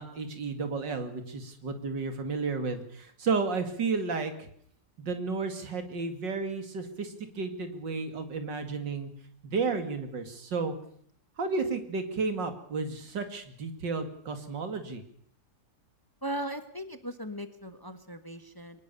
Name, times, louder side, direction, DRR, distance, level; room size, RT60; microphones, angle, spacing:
voice 1, 0.0-4.5 5.0-9.1 9.4-10.7 11.4-15.0, right 4 dB, 85° right, 8 dB, 3.0 m, -32 dB
voice 2, 16.2-18.8, right 1 dB, 15° left, 10 dB, 1.3 m, -38 dB
23.0 x 19.5 x 7.0 m, 0.62 s
omnidirectional pair, 1.9 m